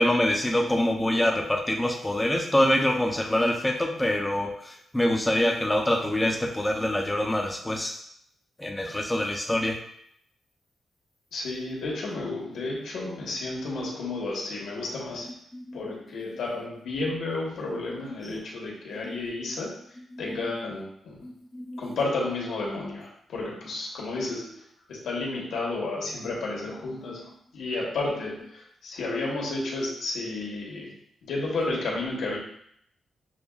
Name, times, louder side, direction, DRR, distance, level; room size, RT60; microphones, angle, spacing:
voice 1, 0.0-8.0 8.6-9.8 15.3-15.8 18.2-18.4 19.0-19.2 20.1-20.5 21.2-22.1, left 1 dB, 10° left, 1 dB, 0.5 m, -26 dB
voice 2, 11.3-15.3 15.7-19.7 20.2-21.3 21.8-24.6 24.9-30.9 31.2-32.4, left 2 dB, 80° left, -3 dB, 1.2 m, -32 dB
6.9 x 2.3 x 2.3 m, 0.69 s
wide cardioid pair, 180°, 0 cm